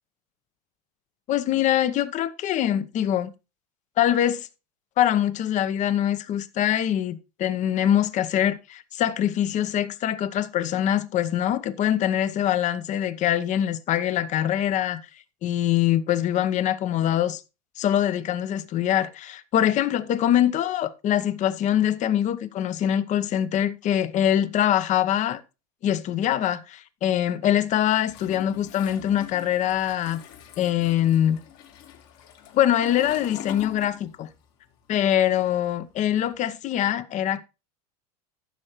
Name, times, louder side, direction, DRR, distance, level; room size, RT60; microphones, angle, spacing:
voice 1, 1.3-3.3 4.0-4.5 5.0-15.0 15.4-17.4 17.8-25.4 25.8-30.2 30.6-31.4 32.5-34.3 34.9-37.4, left 11 dB, 40° left, 0.9 m, -23 dB
Toilet flush, 28.0-34.5 34.7-36.3, left 11 dB, 60° left, 2.0 m, -43 dB
14.5 x 6.4 x 3.1 m
hypercardioid pair, 95°, 20 cm